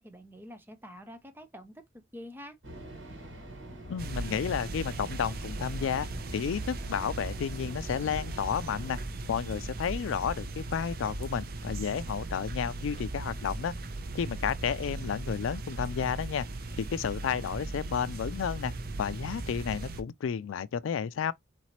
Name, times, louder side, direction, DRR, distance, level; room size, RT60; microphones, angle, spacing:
voice 1, 0.0-1.7 2.1-2.6, equal, 10° right, 0.7 m, -46 dB
sound 1, 2.6-9.0, equal, 70° right, 1.8 m, -46 dB
voice 2, 3.9-9.0 9.3-13.7 14.1-16.5 16.8-18.7 19.0-21.3, left 7 dB, 85° left, 0.4 m, -32 dB
sound 2, 4.0-20.0, right 2 dB, 50° right, 0.6 m, -38 dB
4.3 x 4.0 x 3.0 m
head